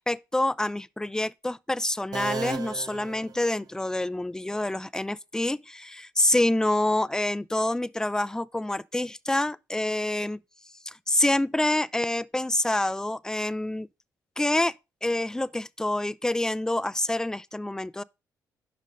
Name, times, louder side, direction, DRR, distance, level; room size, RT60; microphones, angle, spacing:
voice 1, 0.0-10.4 10.9-13.9 14.4-14.7 15.0-18.0, left 1 dB, 10° left, 0.3 m, -27 dB
sound 1, 2.1-4.0, right 5 dB, 55° right, 0.9 m, -36 dB
5.4 x 5.1 x 5.2 m
supercardioid pair, 60°, 8 cm